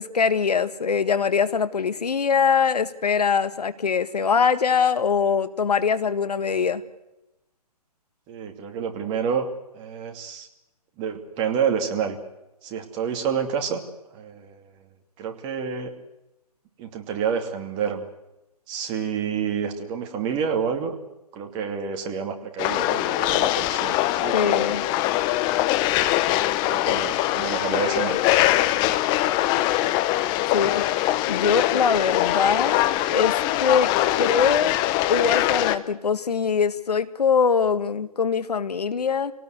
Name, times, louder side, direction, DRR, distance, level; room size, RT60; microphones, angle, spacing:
voice 1, 0.0-6.8 24.3-24.8 30.5-30.8 31.3-32.8 33.1-33.9 34.2-34.7 35.1-39.3, left 6 dB, 75° left, 13 dB, 1.7 m, -22 dB
voice 2, 8.3-9.5 9.7-10.5 11.0-12.2 12.6-13.8 14.1-14.6 15.2-15.9 16.8-18.1 18.7-20.9 21.3-24.8 25.1-25.3 25.9-26.0 26.2-26.3 26.6-28.2 28.8-29.0 29.3-29.4, right 7 dB, 25° right, 5 dB, 2.6 m, -29 dB
sound 1, 22.6-35.8, left 15 dB, 20° left, 0.9 m, -22 dB
27.0 x 18.5 x 8.1 m, 0.96 s
hypercardioid pair, 140°, 20 cm